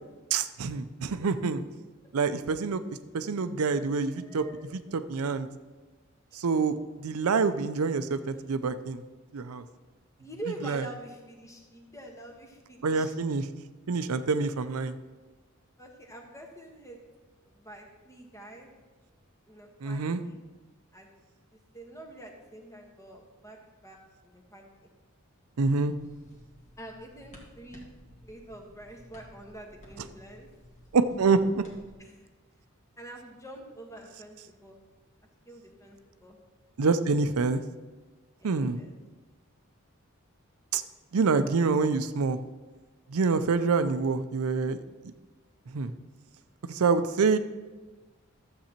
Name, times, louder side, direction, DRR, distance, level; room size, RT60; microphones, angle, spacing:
voice 1, 0.3-1.6 2.1-2.8 3.1-4.4 4.7-5.5 6.3-6.8 7.0-9.0 9.3-9.6 10.6-10.8 12.8-13.5 13.9-15.0 19.8-20.2 25.6-25.9 30.9-31.6 36.8-37.6 38.4-38.8 40.7-40.8 41.1-42.4 43.1-44.8 45.7-45.9 46.6-47.4, right 4 dB, 90° right, 11 dB, 0.5 m, -26 dB
voice 2, 4.1-4.6 10.2-13.1 15.8-17.0 17.5-18.7 19.5-20.4 20.9-21.1 21.5-23.6 23.8-24.9 26.8-27.9 28.2-30.5 32.0-32.3 33.0-34.8 35.4-36.4 38.4-38.9, right 1 dB, 15° left, 1 dB, 1.3 m, -46 dB
sound 1, 25.9-31.9, equal, 35° left, 1.7 m, -53 dB
13.0 x 7.7 x 2.9 m, 1.3 s
head